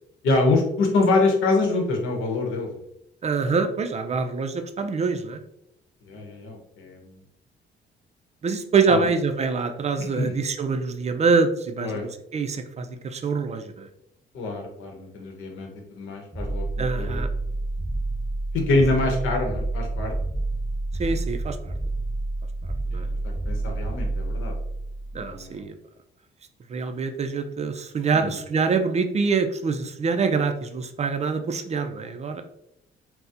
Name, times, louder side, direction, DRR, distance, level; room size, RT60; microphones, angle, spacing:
voice 1, 0.2-2.7 6.1-7.1 8.9-9.0 10.1-10.3 11.8-12.0 14.3-17.2 18.5-20.1 22.9-23.0 23.5-24.5 25.1-25.6 28.1-28.3, left 3 dB, 85° left, 2 dB, 0.8 m, -25 dB
voice 2, 3.2-5.4 8.4-13.9 16.8-17.3 21.0-21.7 22.9-23.1 25.1-25.7 26.7-32.4, right 4 dB, 35° right, 7 dB, 0.4 m, -25 dB
sound 1, 16.3-25.4, right 2 dB, 5° left, 0.7 m, -29 dB
4.1 x 2.0 x 2.5 m, 0.77 s
cardioid pair, 90°, 20 cm